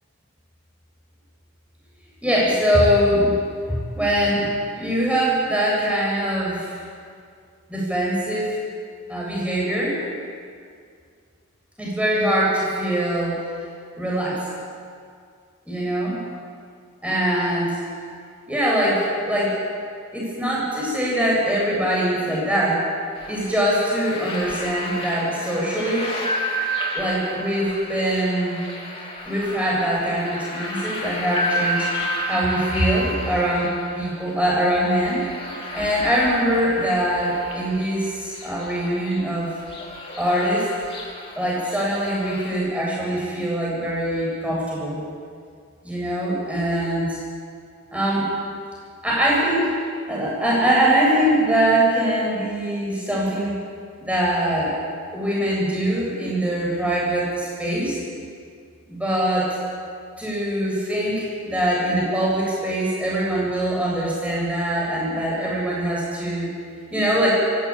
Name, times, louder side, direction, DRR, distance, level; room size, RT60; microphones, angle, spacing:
voice 1, 2.2-3.3 3.7-6.8 7.7-8.6 9.1-10.0 11.8-13.4 14.0-14.5 15.7-16.2 17.0-17.8 18.5-19.6 20.1-22.8 23.3-26.1 26.9-28.6 29.3-35.3 35.7-39.5 40.2-40.7 41.4-45.0 45.8-47.2 47.9-48.3 49.0-49.7 50.1-53.5 54.0-54.7 55.1-58.0 58.9-59.6 60.2-66.5 66.9-67.3, right 1 dB, 5° right, -5 dB, 8.0 m, -22 dB
sound 1, 23.1-42.5, equal, 25° left, 3.5 m, -31 dB
23.5 x 17.0 x 8.8 m, 2.2 s
head